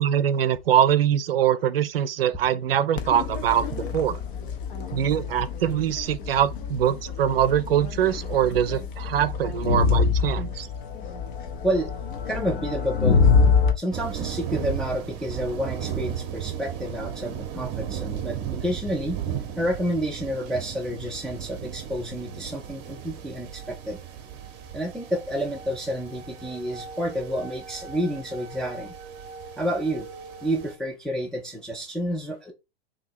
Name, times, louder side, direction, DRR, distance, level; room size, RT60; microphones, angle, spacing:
voice 1, 0.0-4.2 4.9-10.7, right 10 dB, 65° right, 0.5 m, -23 dB
Crowd, 3.0-13.7, left 5 dB, 55° left, 0.8 m, -25 dB
voice 2, 12.3-13.3 13.8-19.2 19.6-24.0 24.7-28.9 29.6-30.1 30.4-32.5, equal, ahead, 0.3 m, -29 dB
sound 1, 13.9-30.7, right 9 dB, 35° right, 0.8 m, -35 dB
2.8 x 2.7 x 4.3 m
figure-of-eight pair, 110°, 31 cm